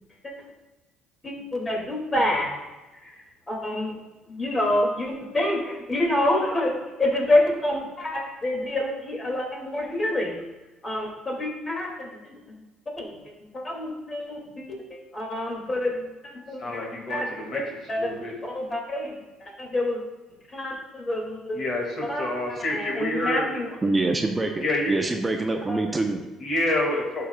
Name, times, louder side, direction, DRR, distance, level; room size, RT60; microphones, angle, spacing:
voice 1, 1.2-2.5 3.0-4.0 4.3-6.7 7.0-10.4 10.8-12.4 13.0-13.1 13.5-16.8 17.1-17.6 17.9-18.1 18.4-19.1 19.4-20.0 20.5-21.6 22.0-22.3 22.7-23.7 25.7-25.8, left 1 dB, 30° left, -1 dB, 2.3 m, -27 dB
voice 2, 16.6-18.3 21.5-23.6 24.6-25.0 26.4-27.3, left 1 dB, 50° left, 0 dB, 2.1 m, -28 dB
voice 3, 23.8-26.2, right 2 dB, 20° right, 4 dB, 0.6 m, -25 dB
11.5 x 5.8 x 2.3 m, 1.1 s
supercardioid pair, 90°, 0 cm